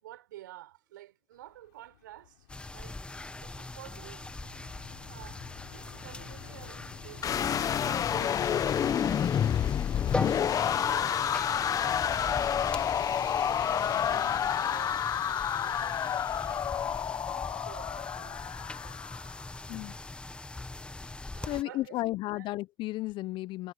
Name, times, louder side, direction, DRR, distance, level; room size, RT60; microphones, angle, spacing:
voice 1, 0.0-3.0 3.4-4.3 5.1-9.3 10.3-13.0 13.4-17.1 17.6-19.2 21.3-22.5, right 14 dB, 75° right, 5.7 m, -51 dB
Fixed-wing aircraft airplane, 1.3-19.1, left 18 dB, 70° left, 3.9 m, -54 dB
sound 1, 2.5-21.6, left 2 dB, 10° left, 1.7 m, -41 dB
sound 2, 7.2-19.3, left 9 dB, 35° left, 1.6 m, -29 dB
voice 2, 21.5-23.7, left 17 dB, 50° left, 1.0 m, -34 dB
hypercardioid pair, 85°, 11 cm